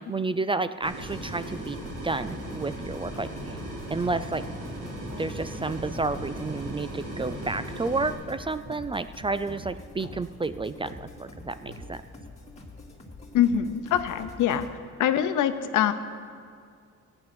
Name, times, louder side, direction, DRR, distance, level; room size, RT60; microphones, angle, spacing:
voice 1, 0.0-3.6 3.9-4.4 5.2-12.0, right 3 dB, 20° right, 13 dB, 0.3 m, -31 dB
sound 1, 0.8-8.1, right 1 dB, 85° right, 3.2 m, -37 dB
sound 2, 1.0-14.7, left 2 dB, 20° left, 2.2 m, -46 dB
sound 3, 3.5-3.6 4.3-4.4 5.1-5.3 5.7-5.8 6.5-6.6 7.3-7.4 7.8-8.0 8.7-8.8 9.5-9.6 10.0-10.2 10.8-11.0 11.7-11.8, right 2 dB, 50° right, 2.0 m, -43 dB
voice 2, 13.3-14.7 15.0-15.9, left 10 dB, 80° left, 10 dB, 0.8 m, -24 dB
14.5 x 9.7 x 6.1 m, 2.3 s
cardioid pair, 90°, 30 cm